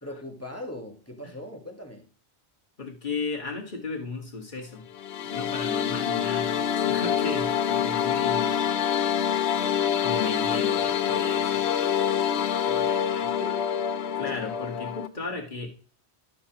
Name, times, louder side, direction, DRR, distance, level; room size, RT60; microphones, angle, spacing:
voice 1, 0.0-2.1 12.7-13.6, left 1 dB, 15° left, 2 dB, 1.3 m, -40 dB
voice 2, 2.8-4.9 5.3-8.7 9.6-11.6 14.2-15.7, left 4 dB, 45° left, 2 dB, 1.9 m, -35 dB
sound 1, 4.9-15.1, left 8 dB, 75° left, 1.0 m, -26 dB
12.0 x 9.5 x 3.0 m, 0.39 s
omnidirectional pair, 1.1 m